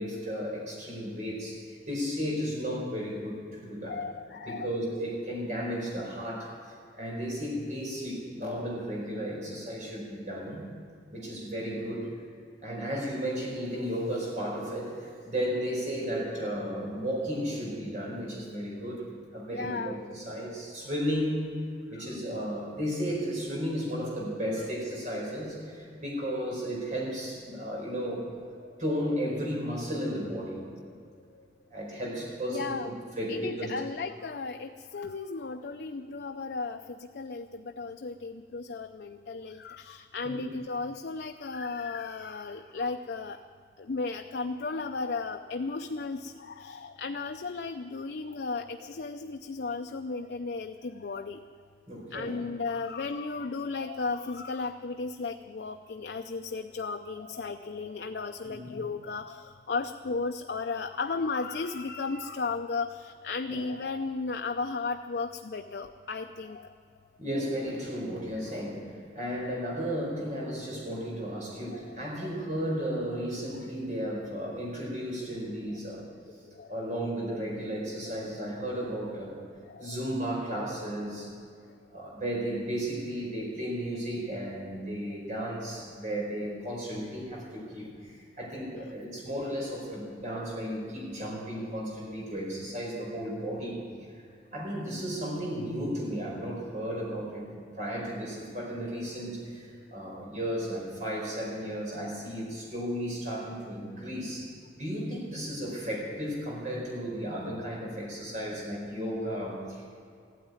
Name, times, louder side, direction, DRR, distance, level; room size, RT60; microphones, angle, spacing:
voice 1, 0.0-4.0 4.5-6.5 6.9-10.7 11.1-12.1 12.6-19.0 19.3-21.4 21.9-28.2 28.8-30.6 31.7-33.7 40.2-40.4 51.9-52.4 58.4-58.7 63.5-63.6 67.2-68.9 69.1-76.0 76.7-79.4 79.8-81.3 81.9-93.8 94.1-94.2 94.5-97.5 97.8-104.5 104.8-110.0, equal, 45° right, -3 dB, 4.8 m, -34 dB
voice 2, 3.9-4.7 19.5-20.0 22.4-22.5 32.5-33.0 33.3-36.8 37.1-43.4 43.8-51.4 52.1-66.6 71.7-72.0 76.6-76.7 79.7-80.0 88.7-88.8, left 4 dB, 70° left, 6 dB, 0.5 m, -35 dB
15.0 x 9.4 x 9.6 m, 2.3 s
head